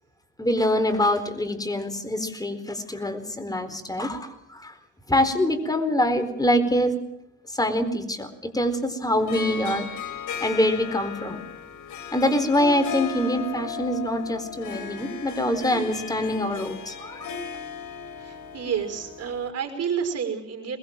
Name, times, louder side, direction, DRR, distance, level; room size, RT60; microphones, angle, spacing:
voice 1, 0.4-4.7 5.1-6.9 7.5-9.9 10.4-11.4 12.1-17.3, left 1 dB, 10° left, 8 dB, 4.2 m, -25 dB
Harp, 9.2-19.5, left 6 dB, 80° left, 3.5 m, -36 dB
voice 2, 18.2-20.8, right 7 dB, 55° right, 6 dB, 5.6 m, -29 dB
23.0 x 21.5 x 7.6 m, 0.84 s
cardioid pair, 100°, 30 cm